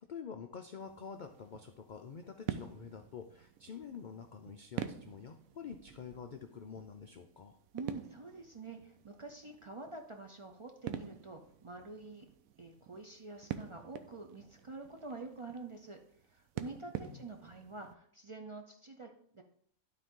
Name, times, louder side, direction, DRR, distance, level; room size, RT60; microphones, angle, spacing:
voice 1, 0.0-7.6 17.1-17.2, left 6 dB, 85° left, 5 dB, 0.4 m, -47 dB
sound 1, 0.8-17.9, right 10 dB, 75° right, 1.0 m, -47 dB
voice 2, 7.7-12.3 12.6-19.4, right 3 dB, 55° right, 3 dB, 0.3 m, -47 dB
12.0 x 4.1 x 3.7 m, 0.64 s
omnidirectional pair, 1.5 m